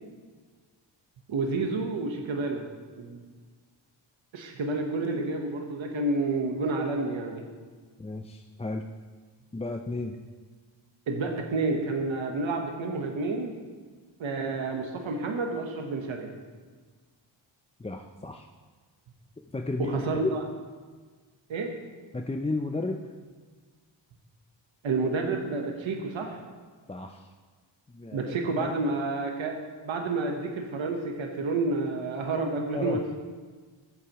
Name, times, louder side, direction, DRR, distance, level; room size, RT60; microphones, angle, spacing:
voice 1, 1.3-2.7 3.0-3.2 4.3-7.4 11.1-13.5 14.2-16.3 19.8-20.3 21.5-21.7 24.8-26.4 28.1-29.6 29.8-33.0, right 3 dB, 75° right, 2 dB, 1.2 m, -29 dB
voice 2, 8.0-8.8 9.5-10.2 17.8-18.5 19.5-20.1 22.1-23.1 26.9-27.3 27.9-28.7 32.7-33.2, left 2 dB, 15° left, 4 dB, 0.5 m, -33 dB
14.0 x 8.1 x 3.0 m, 1.5 s
cardioid pair, 65°, 47 cm